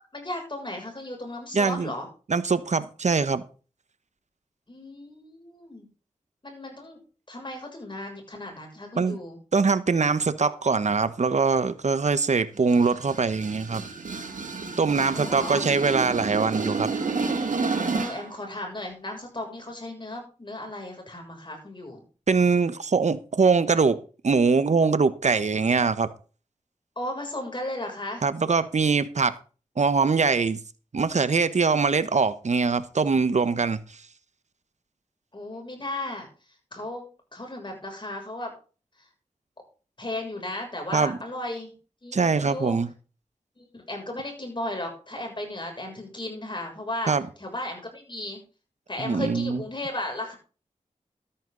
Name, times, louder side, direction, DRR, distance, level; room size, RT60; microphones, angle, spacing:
voice 1, 0.1-2.1 4.7-5.9 6.4-7.0 7.3-9.4 10.4-10.5 15.1-15.7 17.9-22.0 26.9-28.2 35.3-36.3 36.7-38.5 40.0-41.7 42.0-42.8 43.6-47.1 47.4-48.4 48.9-50.3, left 1 dB, 35° left, 6.7 m, -35 dB
voice 2, 1.5-1.9 2.3-3.4 9.0-9.2 9.5-13.8 14.8-16.9 22.3-24.0 24.2-26.1 28.2-29.4 29.8-30.6 30.9-33.8 40.9-41.2 42.1-42.9 47.1-47.2 49.0-49.6, right 4 dB, 60° right, 1.1 m, -22 dB
sound 1, 12.6-18.3, right 4 dB, 80° right, 2.2 m, -30 dB
13.0 x 10.5 x 4.0 m
cardioid pair, 45°, 13 cm